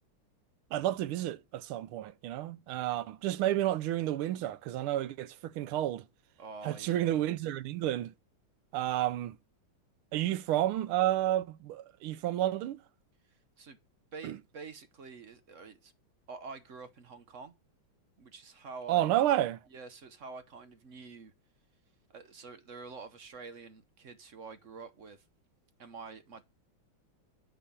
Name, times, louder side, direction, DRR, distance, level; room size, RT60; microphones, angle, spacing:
voice 1, 0.7-6.0 6.6-8.1 8.7-9.4 10.1-12.8 14.2-14.4 18.9-19.6, right 13 dB, 90° right, 1.6 m, -30 dB
voice 2, 6.4-7.2 13.2-13.8 14.1-15.9 16.3-17.5 18.2-19.2 19.7-21.3 22.1-25.2 25.8-26.4, right 4 dB, 50° right, 1.0 m, -47 dB
9.8 x 4.0 x 6.8 m
omnidirectional pair, 2.3 m